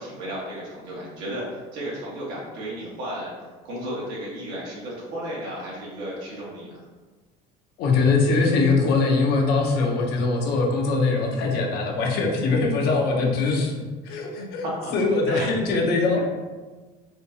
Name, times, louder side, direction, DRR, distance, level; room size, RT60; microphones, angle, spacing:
voice 1, 0.0-3.3 3.6-6.8 14.4-14.9 15.3-15.5 16.1-16.2, equal, 85° right, -5 dB, 1.4 m, -34 dB
voice 2, 7.8-13.8 14.0-14.6 14.9-16.2, left 3 dB, 65° left, 1 dB, 0.7 m, -22 dB
4.4 x 2.3 x 2.7 m, 1.3 s
supercardioid pair, 105°, 18 cm